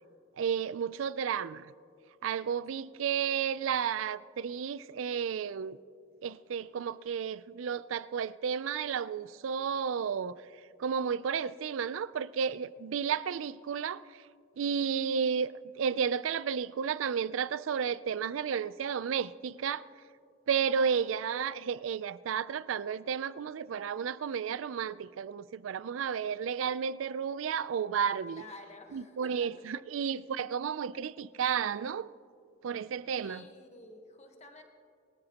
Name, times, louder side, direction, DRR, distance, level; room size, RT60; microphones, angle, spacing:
voice 1, 0.4-1.7 2.2-5.8 6.2-10.4 10.8-14.2 14.6-19.8 20.5-28.4 28.9-32.1 32.6-33.4, right 7 dB, 85° right, 0.4 m, -32 dB
voice 2, 20.6-21.1 28.3-29.7 33.2-34.6, left 2 dB, 35° left, 1.2 m, -52 dB
22.5 x 13.0 x 2.9 m
head